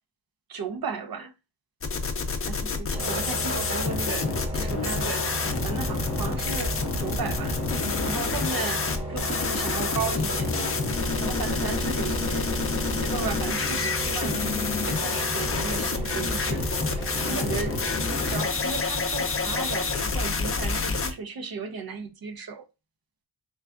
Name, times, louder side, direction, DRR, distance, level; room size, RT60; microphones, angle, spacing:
voice 1, 0.5-1.3 2.4-5.3 5.6-7.6 8.0-10.5 11.2-12.5 12.8-14.6 14.8-16.7 17.3-17.8 18.2-22.6, right 5 dB, 60° right, 0.6 m, -35 dB
sound 1, 1.8-21.1, left 4 dB, 35° left, 0.5 m, -28 dB
sound 2, 2.9-18.4, right 2 dB, 15° right, 0.8 m, -35 dB
3.9 x 3.3 x 2.3 m
wide cardioid pair, 170°, 41 cm